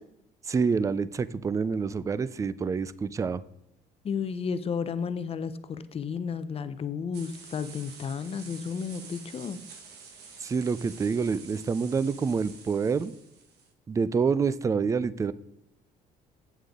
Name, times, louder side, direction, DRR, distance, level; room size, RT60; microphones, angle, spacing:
voice 1, 0.5-3.4 10.4-13.1 13.9-15.3, right 5 dB, 20° right, 17 dB, 0.3 m, -27 dB
voice 2, 4.0-9.6, left 6 dB, 35° left, 13 dB, 0.6 m, -32 dB
sound 1, 7.1-13.7, right 5 dB, 75° right, 1.5 m, -48 dB
8.3 x 7.5 x 3.6 m, 0.85 s
cardioid pair, 110°, 17 cm